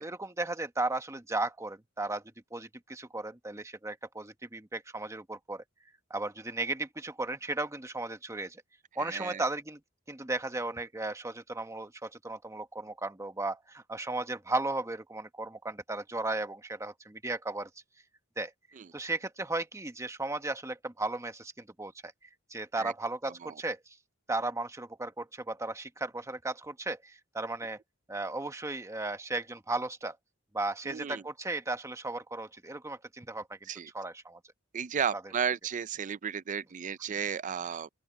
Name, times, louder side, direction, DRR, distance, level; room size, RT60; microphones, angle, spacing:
voice 1, 0.0-2.2 2.5-5.6 6.1-8.6 9.0-9.8 10.1-17.7 18.4-18.5 18.9-22.1 22.5-23.8 24.3-27.8 28.1-30.2 30.5-33.6 33.9-34.4 37.1-37.2, right 2 dB, 15° right, 1.1 m, -35 dB
voice 2, 9.0-9.4 18.8-18.9 22.8-22.9 23.4-23.5 30.9-31.2 33.7-33.9 34.7-37.9, right 7 dB, 40° right, 0.4 m, -34 dB
open air
head